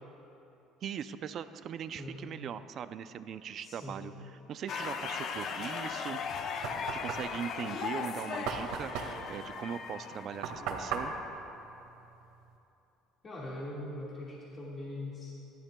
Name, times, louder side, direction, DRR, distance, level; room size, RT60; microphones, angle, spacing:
voice 1, 0.8-4.1 4.5-6.2 6.9-11.1, right 8 dB, 40° right, 12 dB, 0.4 m, -40 dB
voice 2, 3.6-4.0 13.2-15.3, left 1 dB, 25° left, -6 dB, 1.8 m, -41 dB
sound 1, 4.7-10.8, left 6 dB, 45° left, 0.6 m, -38 dB
Knock, 6.2-12.6, right 6 dB, 85° right, 1.7 m, -39 dB
27.5 x 12.0 x 2.3 m, 3.0 s
cardioid pair, 155°, 0 cm